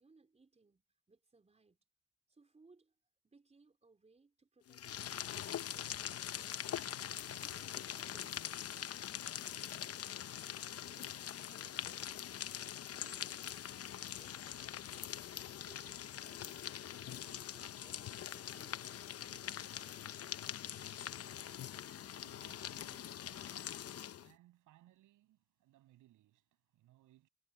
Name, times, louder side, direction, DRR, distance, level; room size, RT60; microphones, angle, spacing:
voice 1, 0.0-1.8 2.3-3.0 3.2-7.0 7.4-14.7 15.0-16.6 17.1-20.9, right 3 dB, 20° right, 4.0 m, -67 dB
sound 1, 4.7-24.3, left 10 dB, 55° left, 0.8 m, -43 dB
voice 2, 20.0-20.4 21.2-27.3, right 15 dB, 90° right, 6.9 m, -68 dB
cardioid pair, 90°, 30 cm